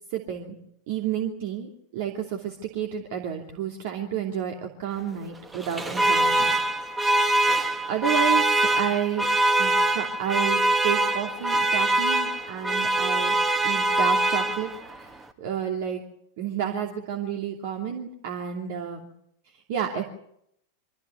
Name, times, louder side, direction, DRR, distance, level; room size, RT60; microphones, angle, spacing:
voice 1, 0.1-0.5 0.9-6.6 7.9-9.3 9.6-13.4 13.6-16.0 16.4-19.1 19.5-20.0, right 8 dB, 50° right, 2 dB, 2.8 m, -30 dB
Alarm, 5.5-15.0, right 1 dB, 10° right, 2.0 m, -23 dB
24.5 x 15.0 x 9.6 m, 0.75 s
figure-of-eight pair, 90°, 0 cm